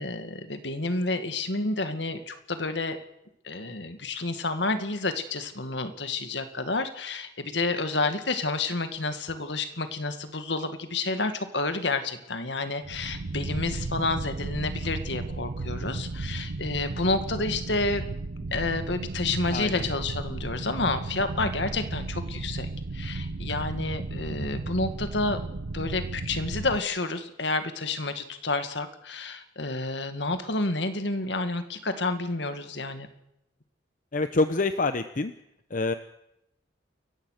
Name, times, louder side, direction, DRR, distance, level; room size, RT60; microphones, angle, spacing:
voice 1, 0.0-3.0 3.4-18.0 18.5-25.4 25.7-33.1, left 3 dB, 65° left, 9 dB, 2.0 m, -30 dB
sound 1, 12.8-26.8, right 2 dB, 75° right, 0.8 m, -34 dB
voice 2, 19.5-19.9 34.1-35.3 35.7-35.9, left 3 dB, 45° left, 10 dB, 0.8 m, -26 dB
28.5 x 15.0 x 6.6 m, 0.84 s
head